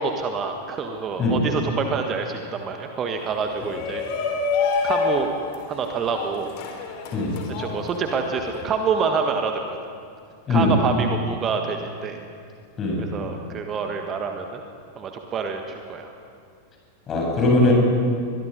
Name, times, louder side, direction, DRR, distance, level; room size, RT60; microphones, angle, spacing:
voice 1, 0.0-4.0 4.8-5.3 5.6-6.5 7.6-9.8 10.5-12.2 13.0-14.6 14.9-16.1, right 5 dB, 25° right, 4 dB, 1.6 m, -27 dB
Shout, 3.5-8.6, left 5 dB, 45° left, 3.6 m, -27 dB
voice 2, 17.1-17.7, left 2 dB, 25° left, -1 dB, 7.8 m, -20 dB
23.5 x 22.0 x 5.4 m, 2.2 s
figure-of-eight pair, 90°, 0 cm